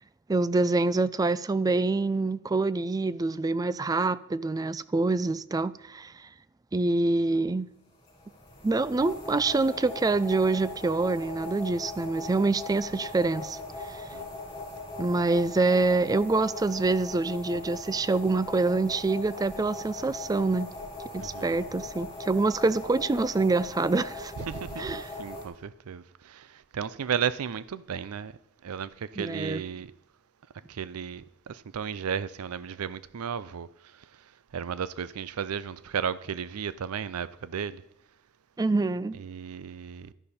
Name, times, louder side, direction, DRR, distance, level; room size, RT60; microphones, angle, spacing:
voice 1, 0.3-6.1 6.7-7.7 8.6-13.6 13.8-14.0 15.0-20.7 21.1-24.3 24.8-25.1 29.2-29.6 38.6-39.2, right 3 dB, 15° right, 0.3 m, -26 dB
sound 1, 8.0-25.5, left 2 dB, 25° left, 4.2 m, -40 dB
voice 2, 21.2-21.6 24.5-28.3 28.6-29.9 30.7-33.7 34.5-37.8 39.2-40.1, right 7 dB, 80° right, 0.5 m, -34 dB
12.0 x 10.5 x 4.2 m
head